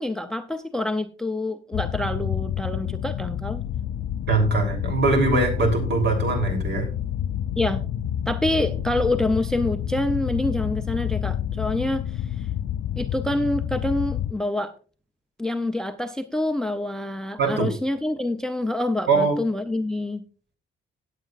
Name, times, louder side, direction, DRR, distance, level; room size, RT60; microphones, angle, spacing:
voice 1, 0.0-3.6 7.6-7.8 8.3-12.5 13.0-14.7 15.4-20.3, left 1 dB, 5° left, 10 dB, 0.5 m, -27 dB
sound 1, 1.7-14.3, left 10 dB, 70° left, 0.5 m, -28 dB
voice 2, 4.3-6.9 17.4-17.7 19.1-19.4, right 4 dB, 55° right, 4 dB, 3.3 m, -22 dB
17.0 x 8.2 x 2.4 m, 0.37 s
wide cardioid pair, 165°, 21 cm